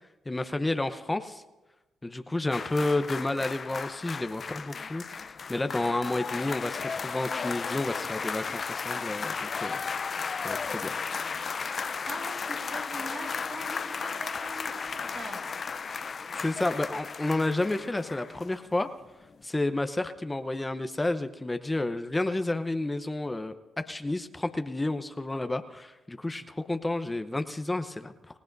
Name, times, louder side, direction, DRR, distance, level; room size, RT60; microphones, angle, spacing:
voice 1, 0.3-1.4 2.0-10.1 10.4-10.9 16.3-18.9 19.4-28.4, left 2 dB, 20° left, 9 dB, 0.9 m, -31 dB
sound 1, 2.5-18.8 19.1-19.2, left 5 dB, 50° left, 0.6 m, -35 dB
voice 2, 11.7-15.4, right 2 dB, 65° right, -2 dB, 5.8 m, -43 dB
28.0 x 16.5 x 2.7 m, 1.1 s
supercardioid pair, 60°, 0 cm